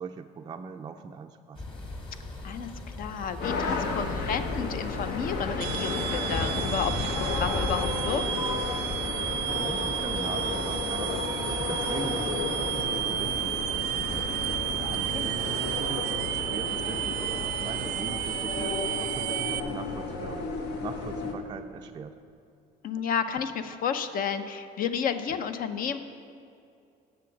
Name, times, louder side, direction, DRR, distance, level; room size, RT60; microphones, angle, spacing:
voice 1, 0.0-1.6 9.5-14.3 14.7-20.4 20.8-22.2, right 6 dB, 25° right, 4 dB, 0.3 m, -40 dB
sound 1, 1.6-16.0, left 2 dB, 30° left, 1.6 m, -39 dB
voice 2, 2.4-8.6 15.1-15.4 22.8-26.0, left 7 dB, 55° left, 10 dB, 0.6 m, -31 dB
sound 2, 3.4-21.3, left 4 dB, 75° left, 1.1 m, -33 dB
sound 3, 5.6-19.6, right 13 dB, 85° right, 0.4 m, -32 dB
7.4 x 7.1 x 7.2 m, 2.5 s
cardioid pair, 110°, 17 cm